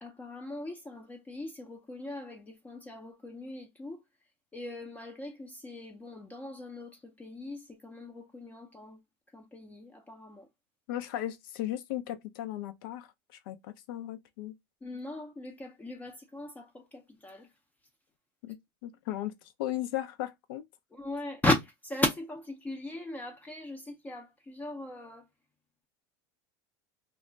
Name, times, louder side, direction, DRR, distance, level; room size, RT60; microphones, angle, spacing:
voice 1, 0.0-4.0 4.5-9.0 9.3-10.5 14.8-17.5 20.9-25.3, left 1 dB, 15° left, 0.5 m, -37 dB
voice 2, 10.9-13.1 13.5-14.5 18.4-20.6, left 13 dB, 75° left, 0.5 m, -36 dB
2.3 x 2.1 x 3.7 m
supercardioid pair, 125°, 12 cm